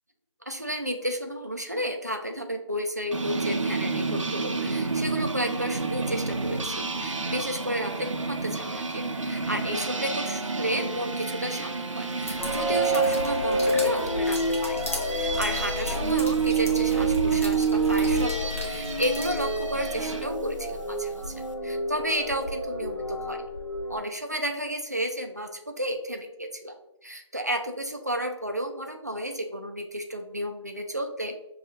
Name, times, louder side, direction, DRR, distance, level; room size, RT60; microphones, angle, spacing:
voice 1, 0.5-21.3 21.6-23.4 23.9-31.4, equal, 35° right, 4 dB, 0.3 m, -32 dB
sound 1, 3.1-20.3, right 5 dB, 85° right, 0.5 m, -29 dB
sound 2, 12.1-19.5, equal, 25° left, 0.5 m, -36 dB
sound 3, 12.4-24.0, equal, 70° left, 1.1 m, -30 dB
5.5 x 2.3 x 2.6 m, 0.88 s
figure-of-eight pair, 175°, 16 cm